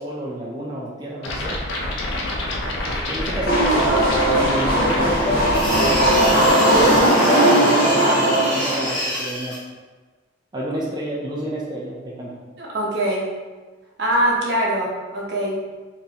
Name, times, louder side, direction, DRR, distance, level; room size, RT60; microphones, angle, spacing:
voice 1, 0.0-1.6 2.8-6.2 6.7-9.6 10.5-12.4, equal, 20° right, -6 dB, 0.4 m, -30 dB
sound 1, 1.2-7.1, left 1 dB, 85° left, 0.5 m, -27 dB
sound 2, 3.5-8.9, right 1 dB, 55° left, 1.2 m, -18 dB
sound 3, 5.2-9.6, equal, 5° right, 1.1 m, -27 dB
voice 2, 12.6-13.3 14.0-15.6, right 1 dB, 60° right, -3 dB, 0.8 m, -22 dB
3.8 x 2.6 x 2.8 m, 1.3 s
head